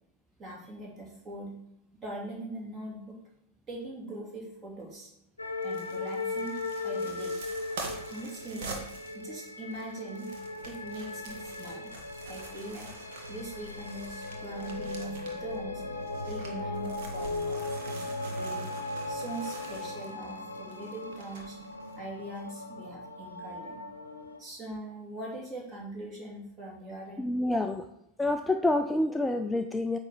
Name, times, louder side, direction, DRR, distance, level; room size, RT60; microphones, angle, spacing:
voice 1, 0.4-1.5 1.9-3.2 3.7-5.1 5.6-7.3 8.0-8.8 9.1-10.3 10.6-12.0 12.3-12.9 13.3-15.8 16.2-18.7 19.1-21.6 22.0-23.8 24.4-27.2, right 2 dB, 25° right, -3 dB, 3.0 m, -42 dB
sound 1, 5.4-24.4, left 2 dB, 85° left, 0.8 m, -38 dB
sound 2, 5.6-15.6 15.9-22.0 22.3-22.4, right 3 dB, 55° right, 1.5 m, -46 dB
voice 2, 27.2-27.9 28.2-30.0, left 2 dB, 5° left, 7 dB, 0.4 m, -27 dB
8.8 x 3.4 x 6.1 m, 0.81 s
figure-of-eight pair, 90°, 0 cm